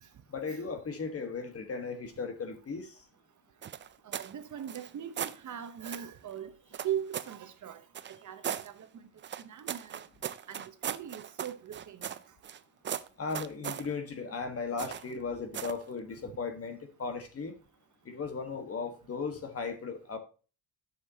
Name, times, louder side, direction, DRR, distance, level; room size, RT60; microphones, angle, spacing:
voice 1, 0.3-2.9 13.2-17.5 18.0-20.2, left 4 dB, 35° left, 1.4 m, -36 dB
sound 1, 3.6-4.3 4.6-5.4 5.8-6.1 6.7-7.4 7.9-8.7 9.2-12.6 12.8-13.9 14.8-15.1 15.5-15.8, right 9 dB, 30° right, 0.4 m, -38 dB
voice 2, 4.0-6.5 6.8-7.8 8.2-8.7 9.5-9.9 10.5-12.0, right 10 dB, 45° right, 0.9 m, -39 dB
11.5 x 6.8 x 2.8 m
cardioid pair, 165°, 41 cm